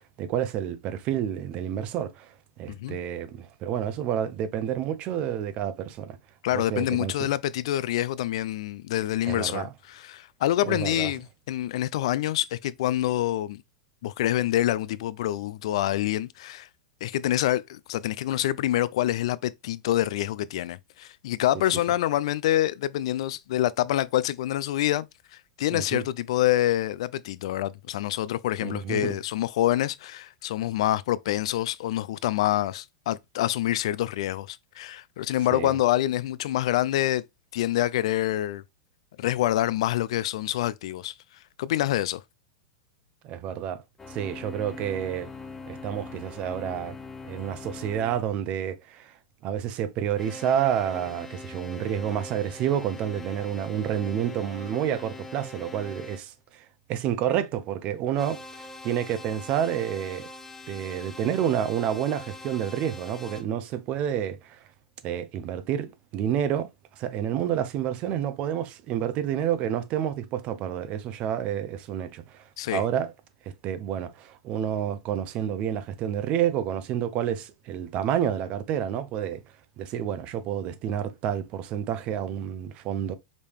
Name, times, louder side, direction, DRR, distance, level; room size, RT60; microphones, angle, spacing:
voice 1, 0.2-2.3 2.6-6.2 6.5-7.3 9.3-9.7 10.6-11.1 25.7-26.0 28.6-29.2 35.5-35.8 43.2-43.8 44.1-45.3 45.7-47.0 47.3-49.1 49.4-60.3 60.7-64.6 65.0-66.7 67.0-72.4 72.7-73.1 73.6-79.4 79.8-83.1, right 9 dB, 40° right, 0.6 m, -29 dB
voice 2, 2.7-3.0 6.4-13.6 14.0-16.7 17.0-25.1 25.6-37.2 37.5-38.6 39.2-41.1 41.6-42.2 72.6-72.8, left 13 dB, 65° left, 0.3 m, -26 dB
sound 1, 44.0-48.2 50.1-56.2 58.1-63.4, left 2 dB, 10° left, 0.7 m, -42 dB
5.2 x 2.7 x 3.4 m
hypercardioid pair, 135°, 3 cm